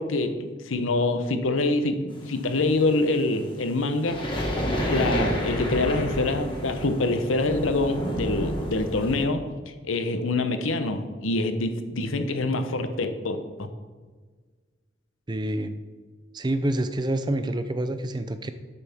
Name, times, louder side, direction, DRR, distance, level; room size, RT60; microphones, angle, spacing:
voice 1, 0.0-4.2 4.8-9.5 9.8-13.7, left 2 dB, 85° left, 8 dB, 0.8 m, -25 dB
sound 1, 2.1-9.2, equal, 25° left, 1.6 m, -30 dB
voice 2, 15.3-15.7 16.3-18.5, right 1 dB, 20° right, 10 dB, 0.4 m, -27 dB
11.5 x 8.1 x 3.5 m, 1.5 s
head